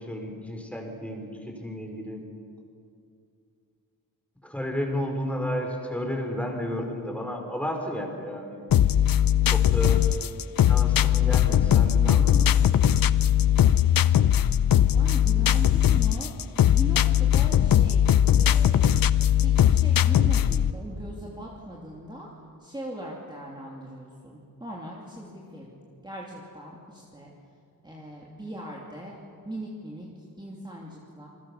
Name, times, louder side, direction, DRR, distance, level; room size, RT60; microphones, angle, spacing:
voice 1, 0.0-2.2 4.4-8.7 9.4-10.0 10.6-12.5, equal, 5° left, 2 dB, 4.3 m, -32 dB
sound 1, 8.7-20.7, left 10 dB, 65° left, 0.7 m, -20 dB
voice 2, 14.9-16.3 16.6-19.1 19.4-22.3 22.6-25.8 26.0-27.3 27.8-29.2 29.4-30.1 30.4-31.3, right 1 dB, 10° right, -3 dB, 2.9 m, -39 dB
28.0 x 22.0 x 6.8 m, 2.5 s
wide cardioid pair, 120°, 38 cm